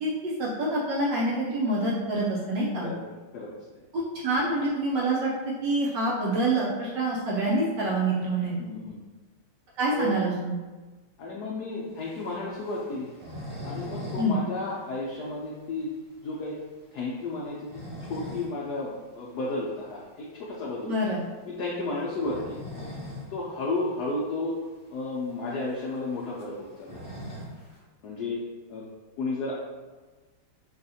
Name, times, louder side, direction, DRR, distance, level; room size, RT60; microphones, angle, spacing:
voice 1, 0.0-2.9 3.9-5.3 5.6-8.6 9.8-10.5 14.2-14.4 20.9-21.2, right 1 dB, 70° right, -5 dB, 1.0 m, -26 dB
voice 2, 8.6-9.0 9.9-10.1 11.2-13.1 13.6-16.0 16.2-16.6 16.9-17.8 18.1-20.9 21.5-22.6 23.3-24.6 24.9-27.0 28.0-28.4 28.7-28.8 29.2-29.6, left 2 dB, 85° left, -4 dB, 0.8 m, -32 dB
sound 1, 12.0-14.3 14.6-14.7 15.1-15.2 15.7-15.8 17.4-18.5 18.9-19.1 20.6-20.8 22.0-23.3 23.7-23.8 24.0-24.1 24.8-24.9 25.2-27.8, left 1 dB, 25° left, 0.5 m, -40 dB
5.1 x 2.4 x 2.7 m, 1.3 s
omnidirectional pair, 2.4 m